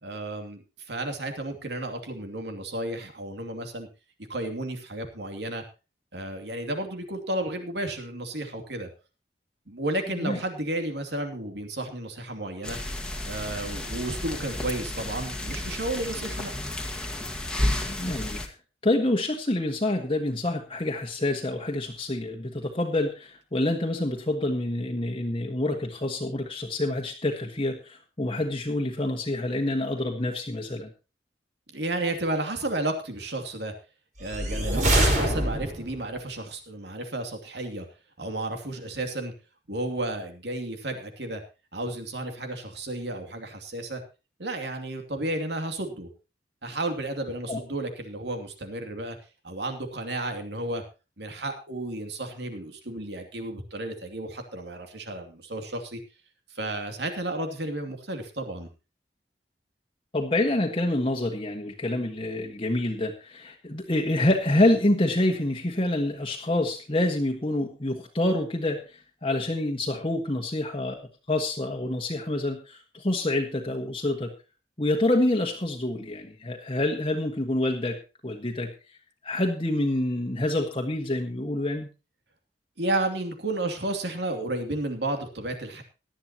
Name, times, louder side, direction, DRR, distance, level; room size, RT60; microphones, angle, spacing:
voice 1, 0.0-3.9 4.3-5.6 6.1-8.9 9.7-12.8 13.3-16.5 31.7-33.7 34.2-37.8 38.2-39.3 39.7-41.4 41.7-44.0 44.4-46.1 46.6-49.2 49.4-50.8 51.2-56.0 56.5-58.7 82.8-85.8, right 2 dB, 70° right, 6 dB, 2.7 m, -32 dB
sound 1, 12.6-18.5, left 1 dB, 5° left, 1.8 m, -32 dB
voice 2, 17.9-18.4 18.8-30.9 35.2-35.4 47.5-47.6 60.1-74.3 74.8-78.7 79.2-81.9, left 1 dB, 30° left, 1 dB, 1.5 m, -27 dB
sound 2, 34.2-36.0, right 1 dB, 45° right, 4.8 m, -24 dB
18.0 x 12.0 x 2.9 m, 0.31 s
head